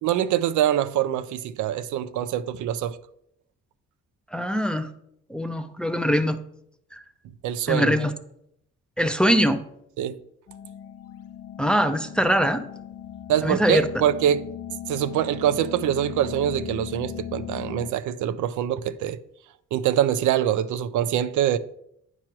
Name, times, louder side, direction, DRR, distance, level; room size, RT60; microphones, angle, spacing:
voice 1, 0.0-3.0 7.4-8.0 10.0-10.2 13.3-14.4 14.9-19.2 19.7-21.6, right 11 dB, 80° right, 0.4 m, -24 dB
voice 2, 4.3-4.9 5.3-6.4 6.9-7.0 7.7-8.2 9.0-9.6 11.6-12.6 13.4-13.9, equal, 5° left, 0.4 m, -22 dB
sound 1, 10.5-17.9, left 10 dB, 55° left, 0.6 m, -38 dB
8.9 x 3.0 x 5.9 m
cardioid pair, 90°, 30 cm